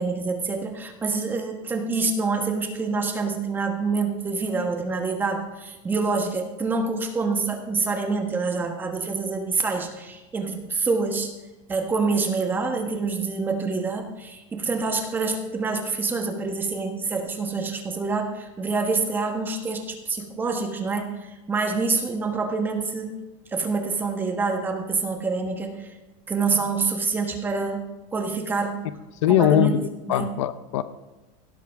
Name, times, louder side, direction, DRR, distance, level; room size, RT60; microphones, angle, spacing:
voice 1, 0.0-11.3 11.7-23.2 23.5-25.9 26.3-28.8 29.3-29.8 30.1-30.3, right 4 dB, 10° right, 4 dB, 1.3 m, -26 dB
voice 2, 29.2-30.8, left 11 dB, 70° left, 13 dB, 0.9 m, -21 dB
17.0 x 12.5 x 3.5 m, 1.1 s
supercardioid pair, 170°, 17 cm